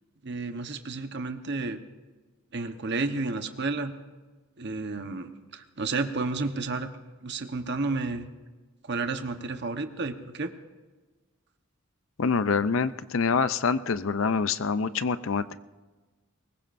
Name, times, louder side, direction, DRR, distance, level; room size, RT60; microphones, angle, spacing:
voice 1, 0.2-1.8 2.5-3.9 4.6-6.9 7.2-8.3 8.8-10.5, right 3 dB, 55° right, 7 dB, 1.1 m, -31 dB
voice 2, 12.2-15.6, left 5 dB, 65° left, 14 dB, 0.5 m, -26 dB
23.0 x 20.5 x 2.6 m, 1.3 s
head